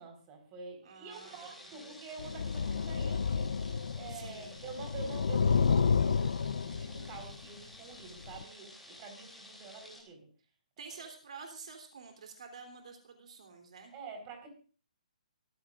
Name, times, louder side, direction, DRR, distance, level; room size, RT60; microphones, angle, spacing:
voice 1, 0.0-3.6 3.9-10.3 11.0-11.1 13.9-14.5, right 4 dB, 20° right, 4 dB, 4.4 m, -47 dB
voice 2, 0.8-1.9 4.1-4.6 10.8-13.9, right 5 dB, 55° right, 5 dB, 3.2 m, -49 dB
sound 1, 1.1-10.0, left 1 dB, ahead, 3.2 m, -53 dB
sound 2, 2.2-4.3 4.6-7.3 8.2-8.4, left 5 dB, 70° left, 0.7 m, -30 dB
23.5 x 15.0 x 2.5 m, 0.39 s
hypercardioid pair, 170°, 4 cm